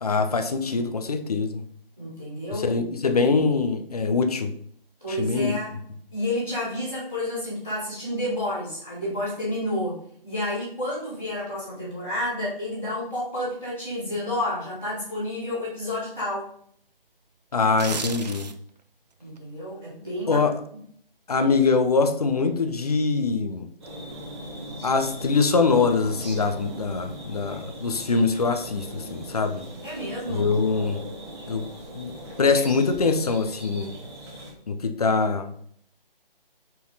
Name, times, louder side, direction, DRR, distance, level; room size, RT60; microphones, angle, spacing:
voice 1, 0.0-1.6 2.5-4.5 5.1-5.6 17.5-18.5 20.3-20.6 21.3-23.7 24.8-29.6 30.3-31.0 31.5-31.7 31.9-33.9 34.7-35.7, left 4 dB, 40° left, 7 dB, 0.7 m, -23 dB
voice 2, 2.0-2.8 5.0-5.7 6.1-16.5 19.2-20.4 29.8-30.7, left 1 dB, ahead, -22 dB, 0.5 m, -30 dB
sound 1, 17.6-18.8 19.2-19.4, right 4 dB, 45° right, 0.6 m, -33 dB
sound 2, 23.8-34.5, right 1 dB, 30° right, 1.8 m, -39 dB
6.4 x 4.1 x 4.1 m, 0.64 s
figure-of-eight pair, 150°, 29 cm